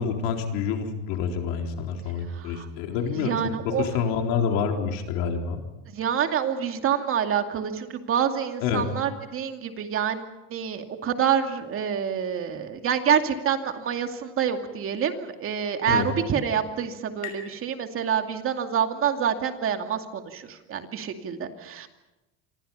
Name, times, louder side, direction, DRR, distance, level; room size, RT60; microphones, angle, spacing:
voice 1, 0.0-3.3 3.6-5.6 8.6-8.8 15.9-16.1, left 6 dB, 75° left, 3 dB, 4.0 m, -27 dB
voice 2, 2.3-2.7 3.2-3.9 5.9-21.9, right 8 dB, 40° right, 6 dB, 2.5 m, -27 dB
sound 1, 15.8-19.1, left 10 dB, 50° left, 5.8 m, -47 dB
27.0 x 25.0 x 5.7 m, 1.0 s
cardioid pair, 130°, 34 cm